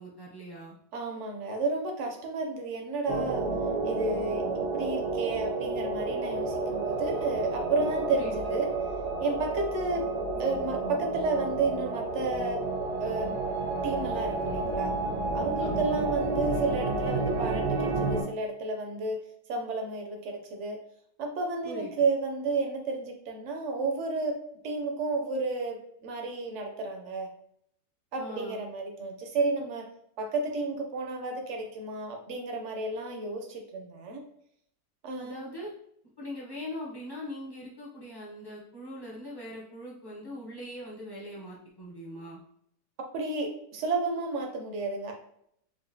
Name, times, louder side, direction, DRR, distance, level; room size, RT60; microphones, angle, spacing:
voice 1, 0.0-0.7 8.1-8.4 15.6-16.0 21.6-21.9 28.2-28.6 35.2-35.7 36.2-42.4, equal, 35° left, -5 dB, 0.4 m, -41 dB
voice 2, 0.9-3.5 3.8-4.5 4.7-8.7 9.2-10.1 10.4-12.6 13.0-13.4 13.8-14.9 15.3-19.2 19.5-20.8 21.2-24.4 24.6-25.8 26.0-27.3 28.1-29.9 30.2-34.2 35.0-35.4 43.1-45.1, right 3 dB, 70° right, 2 dB, 0.6 m, -31 dB
sound 1, 3.1-18.2, right 3 dB, 90° right, 1.4 m, -31 dB
4.8 x 2.2 x 2.6 m, 0.70 s
omnidirectional pair, 1.9 m